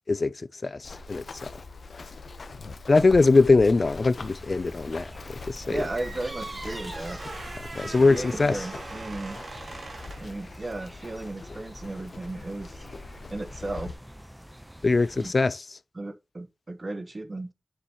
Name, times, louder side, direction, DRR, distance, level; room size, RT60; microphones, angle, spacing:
voice 1, 0.1-1.5 2.9-5.8 7.8-8.6 14.8-15.8, left 3 dB, 55° left, 0.4 m, -22 dB
Run, 0.8-13.9, left 3 dB, 85° left, 0.9 m, -42 dB
sound 1, 3.6-15.3, equal, 5° right, 0.7 m, -46 dB
voice 2, 5.7-7.2 7.8-9.4 10.2-12.9 13.3-13.9 15.2-15.3 15.9-17.5, right 2 dB, 45° right, 1.1 m, -35 dB
sound 2, 5.9-10.4, right 3 dB, 80° right, 2.4 m, -41 dB
7.1 x 7.1 x 3.0 m
wide cardioid pair, 85°, 0 cm